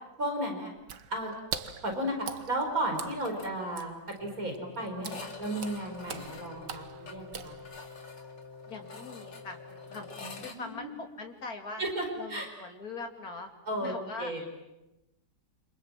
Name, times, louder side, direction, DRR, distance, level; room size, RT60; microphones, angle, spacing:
voice 1, 0.2-0.7 1.1-1.3 1.8-2.2 2.5-7.6 10.2-10.9 11.8-12.5 13.7-14.5, right 1 dB, 50° right, 3 dB, 5.5 m, -34 dB
Water / Splash splatter, 0.8-8.0, right 7 dB, 85° right, 1.9 m, -43 dB
sound 1, 2.9-3.5 3.8-3.9 4.2-4.3 5.0-10.6, left 4 dB, 85° left, 3.3 m, -48 dB
sound 2, 4.2-10.5, left 4 dB, 40° left, 3.0 m, -49 dB
voice 2, 8.7-9.6 9.9-10.1 10.4-11.8 12.2-13.5 13.8-14.3, left 3 dB, 55° left, 4 dB, 3.3 m, -41 dB
28.5 x 27.0 x 7.5 m, 0.96 s
omnidirectional pair, 1.9 m